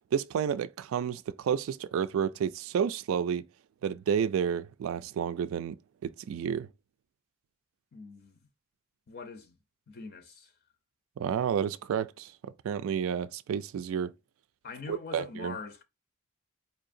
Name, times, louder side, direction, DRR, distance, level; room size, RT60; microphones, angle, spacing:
voice 1, 0.1-3.5 3.8-5.8 6.0-6.7 11.2-14.1 14.9-15.6, right 7 dB, 70° right, 0.3 m, -30 dB
voice 2, 7.9-8.4 9.1-9.6 9.9-10.5 14.6-15.8, left 4 dB, 50° left, 0.5 m, -43 dB
4.5 x 2.7 x 2.5 m
head